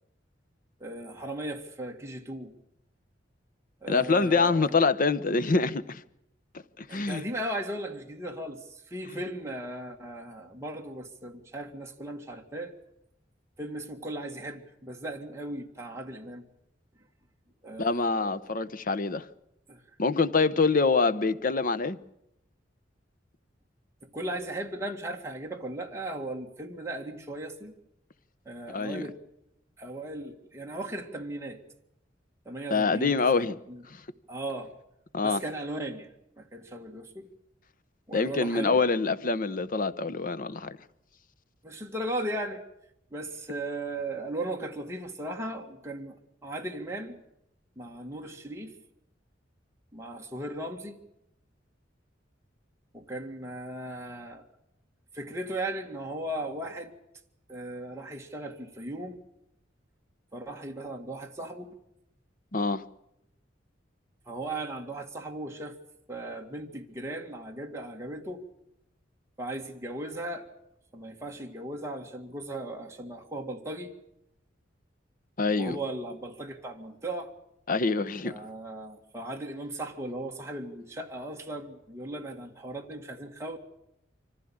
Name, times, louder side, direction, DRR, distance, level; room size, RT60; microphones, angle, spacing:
voice 1, 0.8-2.5 3.8-4.8 6.9-12.7 13.6-16.5 17.6-18.4 19.7-19.8 24.1-27.7 28.5-29.2 29.8-31.6 32.5-33.8 34.3-34.7 35.2-36.1 36.4-37.3 38.1-38.8 41.6-42.6 43.1-46.2 46.4-47.2 47.8-48.8 49.9-51.0 52.9-54.5 55.1-56.9 57.5-59.2 60.3-61.8 64.3-65.8 66.1-68.5 69.4-70.5 70.9-73.9 75.6-77.3 78.2-83.6, right 1 dB, 15° right, 2.0 m, -37 dB
voice 2, 3.9-6.0 6.8-7.2 17.8-19.2 20.0-22.0 28.7-29.1 32.7-33.6 33.9-34.0 35.1-35.4 38.1-40.8 62.5-62.8 75.4-75.8 77.7-78.3, left 4 dB, 50° left, 0.9 m, -25 dB
25.0 x 15.5 x 8.7 m
head